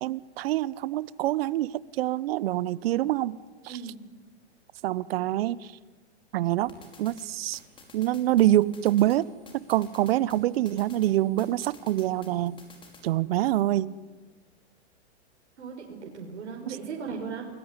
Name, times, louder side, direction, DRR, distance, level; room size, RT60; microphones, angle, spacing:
voice 1, 0.0-3.4 3.6-3.8 4.8-5.7 6.3-6.7 7.0-7.6 7.9-9.3 9.5-12.6 13.0-14.0 16.7-16.8, right 14 dB, 55° right, 20 dB, 1.0 m, -25 dB
voice 2, 3.7-4.0 15.6-17.5, right 5 dB, 75° right, 0 dB, 5.2 m, -37 dB
sound 1, 6.7-13.1, left 3 dB, 15° left, 4.9 m, -53 dB
29.0 x 20.0 x 9.8 m, 1.4 s
hypercardioid pair, 130°, 35 cm